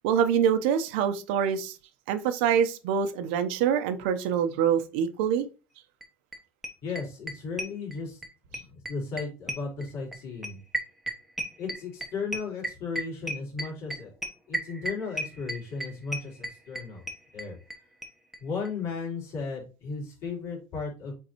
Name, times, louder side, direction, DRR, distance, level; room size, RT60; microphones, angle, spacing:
voice 1, 0.0-1.7 2.1-5.4, right 8 dB, 85° right, 1.0 m, -25 dB
sound 1, 6.0-6.1 6.3-6.4 6.6-8.3 8.5-17.8 18.0-18.1 18.3-18.4 18.6-18.7, right 1 dB, 5° right, 1.1 m, -34 dB
voice 2, 6.8-8.2 8.7-10.6 11.6-14.1 14.5-17.0 17.3-17.6 18.4-21.1, left 4 dB, 50° left, 3.9 m, -35 dB
8.0 x 3.9 x 3.1 m
cardioid pair, 130°, 6 cm